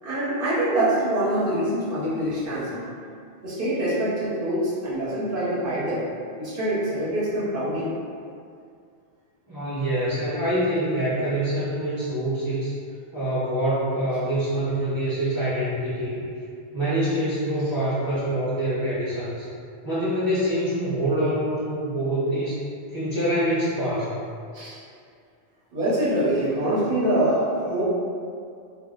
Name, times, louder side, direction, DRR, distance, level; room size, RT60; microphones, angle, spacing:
voice 1, 0.0-2.8 3.4-6.0 6.4-7.9 24.5-24.7 25.7-27.8, right 1 dB, 55° right, -9 dB, 1.0 m, -24 dB
voice 2, 9.5-12.7 13.1-16.2 16.7-19.5 19.8-22.6 22.9-24.1, right 1 dB, 20° right, -12 dB, 0.9 m, -25 dB
2.4 x 2.1 x 3.6 m, 2.3 s
omnidirectional pair, 1.1 m